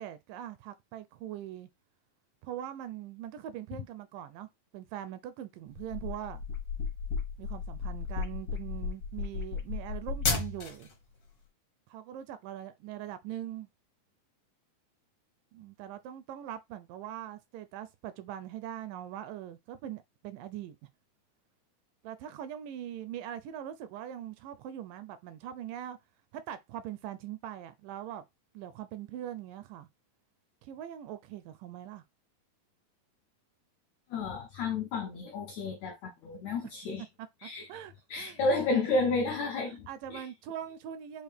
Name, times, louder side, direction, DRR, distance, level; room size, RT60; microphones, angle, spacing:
voice 1, 0.0-1.7 2.4-6.4 7.4-10.9 11.9-13.7 15.5-20.8 22.0-26.0 26.3-28.2 28.5-29.9 30.6-32.0 37.2-38.8 39.7-41.2, right 11 dB, 80° right, 2.0 m, -42 dB
sound 1, 5.8-10.9, left 5 dB, 65° left, 1.1 m, -34 dB
voice 2, 34.1-37.0 37.4-37.7 38.1-40.2, left 3 dB, 80° left, 1.6 m, -31 dB
6.3 x 2.5 x 3.4 m
omnidirectional pair, 4.1 m